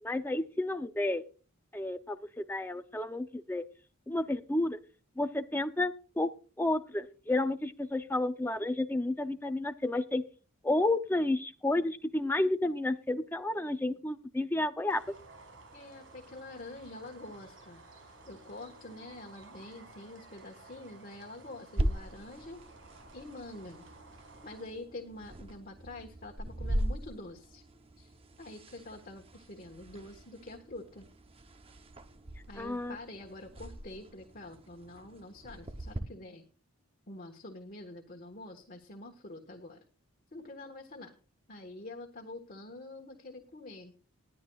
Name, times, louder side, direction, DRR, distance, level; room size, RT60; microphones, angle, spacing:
voice 1, 0.0-1.2 1.7-3.6 4.1-4.8 5.2-6.3 6.6-10.2 10.6-15.0 32.6-32.9, left 2 dB, 10° left, 7 dB, 0.5 m, -31 dB
sound 1, 14.9-24.6, right 2 dB, 60° right, 4.2 m, -54 dB
voice 2, 15.7-22.6 23.1-23.8 24.2-27.6 28.0-31.1 32.5-36.4 37.1-39.8 40.3-41.1 41.5-43.9, left 2 dB, 40° left, 3 dB, 1.3 m, -46 dB
sound 2, 21.8-36.0, right 1 dB, 25° right, 0.7 m, -40 dB
20.0 x 9.9 x 2.4 m, 0.36 s
head